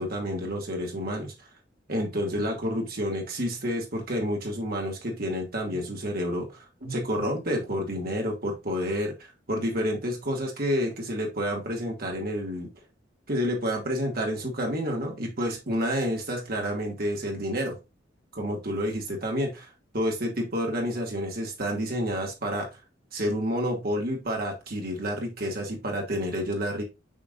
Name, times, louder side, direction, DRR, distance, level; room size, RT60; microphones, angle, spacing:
voice 1, 0.0-1.3 1.9-12.7 13.3-17.8 18.3-19.5 19.9-22.7 23.1-26.8, equal, 55° right, 1 dB, 2.3 m, -29 dB
8.5 x 4.9 x 2.5 m, 0.26 s
head